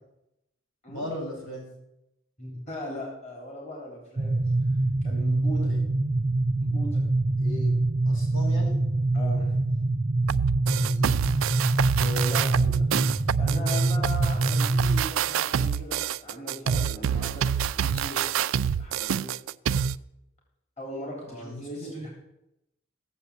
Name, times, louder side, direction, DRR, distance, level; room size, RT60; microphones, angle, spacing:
voice 1, 0.9-1.7 5.5-5.8 7.4-7.7 8.0-8.7 10.7-11.3 21.3-21.9, left 1 dB, 85° left, -2 dB, 6.4 m, -38 dB
voice 2, 2.4-4.3 5.0-5.7 6.6-7.0 9.1-9.5 12.0-12.9 13.4-19.3 20.8-22.1, left 1 dB, 35° left, -1 dB, 3.5 m, -38 dB
sound 1, 4.2-15.0, right 2 dB, 30° right, 0.5 m, -25 dB
sound 2, 10.3-20.0, right 8 dB, 90° right, 0.4 m, -27 dB
16.0 x 7.1 x 8.4 m, 0.86 s
head